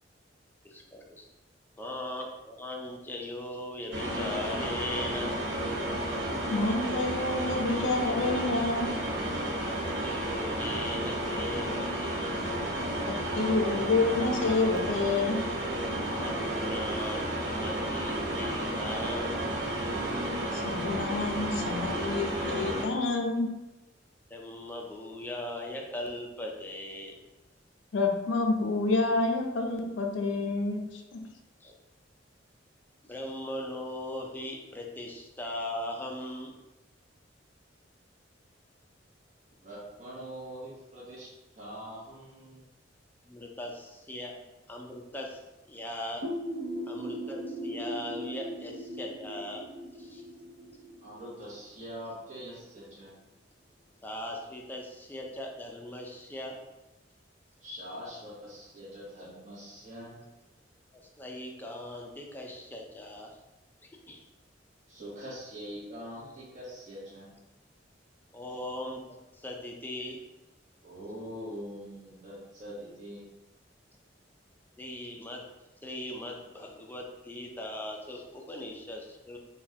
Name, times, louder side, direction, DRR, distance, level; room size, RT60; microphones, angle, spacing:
voice 1, 0.6-1.3 1.8-5.3 9.6-9.8 10.0-12.4 12.8-13.1 16.2-19.4 24.3-27.1 31.6-31.7 33.0-36.5 43.3-44.3 44.7-45.4 45.7-46.2 46.9-49.6 50.0-50.2 54.0-56.6 61.2-63.3 63.8-64.2 68.3-70.2 74.8-75.4 75.8-79.4, left 1 dB, 10° left, 0 dB, 0.4 m, -39 dB
sound 1, 3.9-22.8, right 1 dB, 90° right, 0.9 m, -32 dB
voice 2, 6.5-8.9 13.1-15.4 20.5-23.5 27.9-31.2, left 3 dB, 80° left, 3 dB, 0.5 m, -28 dB
voice 3, 39.6-42.6 51.0-53.1 57.6-60.2 64.9-67.4 70.8-73.3, equal, 40° right, -9 dB, 1.0 m, -43 dB
sound 2, 46.2-51.8, equal, 60° right, 0.5 m, -38 dB
4.0 x 2.2 x 2.7 m, 1.0 s
head